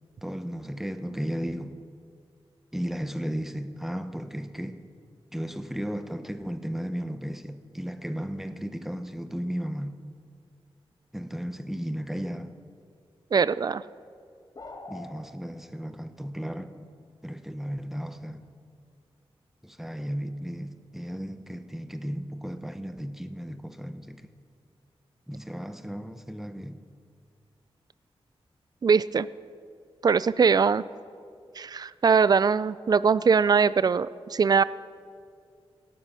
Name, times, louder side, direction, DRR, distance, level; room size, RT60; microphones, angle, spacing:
voice 1, 0.2-1.8 2.7-4.8 5.3-10.0 11.1-12.6 14.9-16.9 17.2-18.4 19.6-24.3 25.3-26.8, equal, 5° right, 0.7 m, -34 dB
voice 2, 13.3-13.8 28.8-29.3 30.0-30.8 31.6-34.6, right 5 dB, 40° right, 0.4 m, -21 dB
sound 1, 14.6-15.1, left 3 dB, 40° left, 1.8 m, -41 dB
17.0 x 13.0 x 5.6 m
wide cardioid pair, 125°, 10 cm